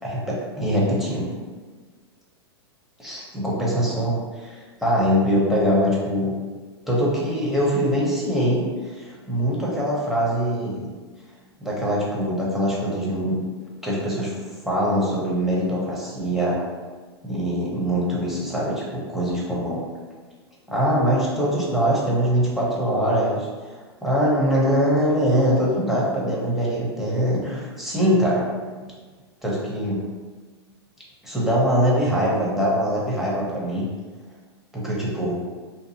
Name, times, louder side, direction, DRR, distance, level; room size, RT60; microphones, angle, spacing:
voice 1, 0.0-1.3 3.0-6.3 6.9-10.9 11.6-13.4 13.8-14.3 14.6-16.5 17.2-19.8 20.7-28.5 29.4-30.0 31.2-33.8 34.7-35.4, equal, ahead, -6 dB, 0.8 m, -23 dB
2.6 x 2.3 x 2.7 m, 1.4 s
hypercardioid pair, 110°, 14 cm